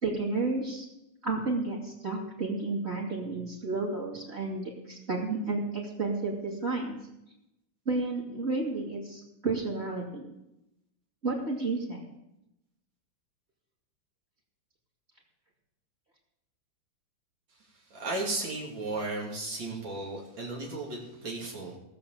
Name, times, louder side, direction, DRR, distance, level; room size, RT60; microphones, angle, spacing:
voice 1, 0.0-0.9 1.2-6.9 7.8-10.2 11.2-12.0, right 3 dB, 35° right, -2 dB, 3.0 m, -31 dB
voice 2, 17.9-21.8, right 2 dB, 90° right, -3 dB, 3.3 m, -35 dB
17.0 x 7.1 x 7.3 m, 0.89 s
omnidirectional pair, 2.0 m